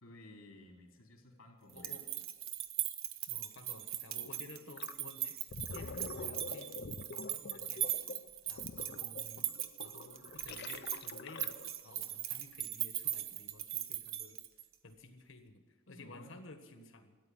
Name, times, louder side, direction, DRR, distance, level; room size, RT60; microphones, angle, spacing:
voice 1, 0.0-2.0 15.9-16.3, left 1 dB, 90° left, 1 dB, 3.1 m, -55 dB
voice 2, 1.7-2.3 3.3-5.4 5.6-8.1 8.5-9.5 9.8-11.6 11.8-14.4 14.8-17.2, left 2 dB, 70° left, 6 dB, 1.6 m, -54 dB
sound 1, 1.7-14.7, right 12 dB, 70° right, 0.9 m, -40 dB
Gurgling, 4.8-5.0 5.4-11.8, left 4 dB, 55° left, 0.6 m, -46 dB
13.5 x 9.4 x 9.2 m, 1.4 s
head